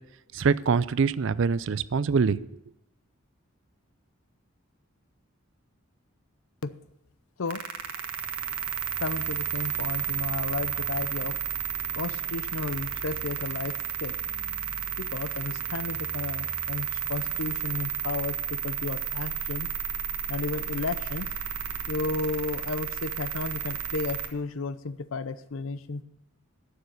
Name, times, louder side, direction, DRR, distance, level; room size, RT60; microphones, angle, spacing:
voice 1, 0.3-2.5, right 5 dB, 60° right, 17 dB, 0.4 m, -24 dB
sound 1, 7.5-24.3, right 8 dB, 85° right, 1.4 m, -32 dB
voice 2, 9.0-11.4 11.9-14.2 15.0-19.7 20.3-21.3 21.9-26.0, left 4 dB, 70° left, 15 dB, 0.6 m, -33 dB
11.5 x 6.9 x 8.0 m, 0.86 s
head